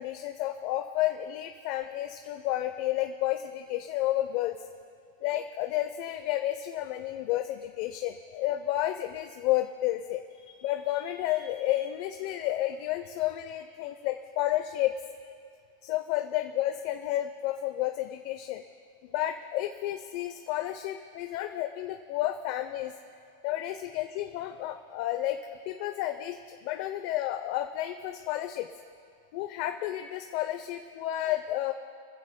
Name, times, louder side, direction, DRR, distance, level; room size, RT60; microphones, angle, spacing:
voice 1, 0.0-4.6 5.2-14.9 15.8-18.6 19.0-22.9 23.4-25.4 25.7-28.7 29.3-31.7, left 14 dB, 50° left, 7 dB, 0.6 m, -31 dB
25.5 x 15.0 x 2.2 m, 2.4 s
supercardioid pair, 140°, 0 cm